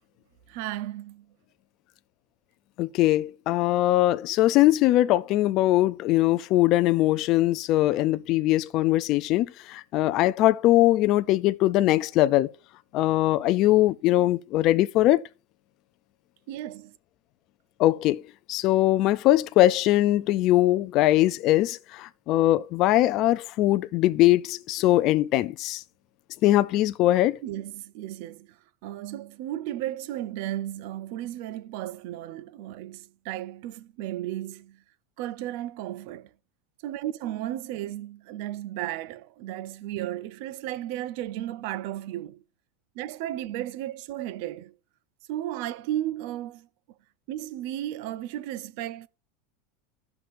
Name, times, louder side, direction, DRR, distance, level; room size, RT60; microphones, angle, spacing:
voice 1, 0.5-1.2 16.5-16.8 27.4-28.5 28.8-34.8 35.2-36.3 36.8-42.4 43.0-44.7 45.3-46.7 47.3-49.1, right 13 dB, 55° right, 0.5 m, -34 dB
voice 2, 2.8-12.5 12.9-15.2 17.8-18.2 18.5-25.8 26.4-27.4, left 15 dB, 40° left, 0.3 m, -21 dB
15.5 x 5.8 x 2.5 m
supercardioid pair, 155°, 0 cm